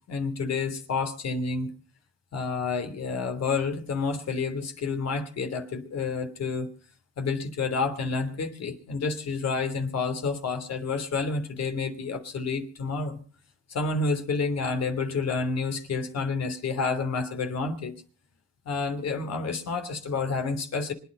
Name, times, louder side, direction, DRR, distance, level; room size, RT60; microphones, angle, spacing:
voice 1, 0.1-1.7 2.3-6.7 7.2-13.2 13.7-17.9 18.6-20.9, left 4 dB, 60° left, 3.1 m, -29 dB
25.5 x 9.7 x 5.4 m
cardioid pair, 90°, 30 cm